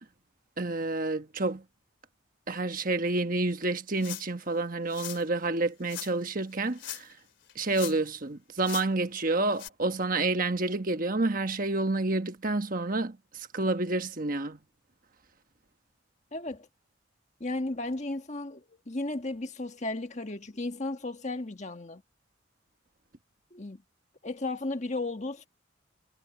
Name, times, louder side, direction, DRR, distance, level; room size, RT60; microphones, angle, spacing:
voice 1, 0.6-1.6 2.5-7.1 7.5-14.6, right 2 dB, 45° right, 1.3 m, -29 dB
sound 1, 4.0-4.4 4.9-5.2 5.9-6.1 6.7-7.2 7.5-8.2 8.6-8.9 9.6-9.7, left 13 dB, 60° left, 3.7 m, -40 dB
voice 2, 16.3-16.7 17.4-22.0 23.5-23.8 24.2-25.5, left 2 dB, 35° left, 1.6 m, -34 dB
head